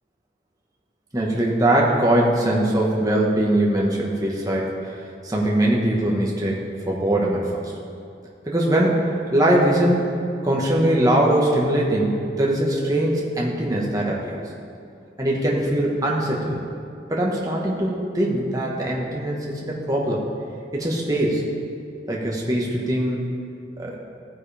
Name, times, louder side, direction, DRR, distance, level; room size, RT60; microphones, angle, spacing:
voice 1, 1.1-5.0 5.2-6.6 6.9-7.7 8.4-14.4 15.2-16.6 17.1-20.2 20.7-21.4 22.1-23.3 23.8-24.0, right 1 dB, 20° right, -3 dB, 1.5 m, -21 dB
15.0 x 9.5 x 3.5 m, 2.5 s
head